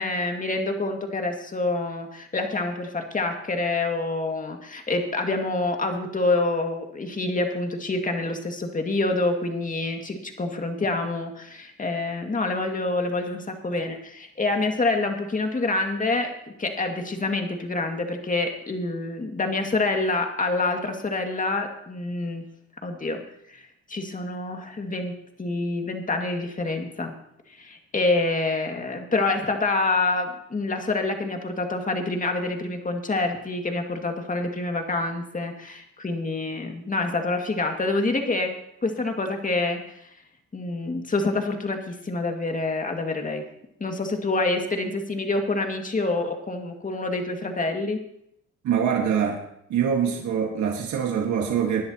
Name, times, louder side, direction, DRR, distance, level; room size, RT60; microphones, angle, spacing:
voice 1, 0.0-16.3 16.6-22.4 22.8-23.2 23.5-23.6 23.9-27.1 27.5-40.1 40.5-43.4 43.8-48.0, left 2 dB, 25° left, 4 dB, 2.1 m, -27 dB
voice 2, 48.6-49.4 49.7-51.8, right 8 dB, 75° right, 1 dB, 1.7 m, -24 dB
20.0 x 10.5 x 3.0 m, 0.75 s
cardioid pair, 90°, 30 cm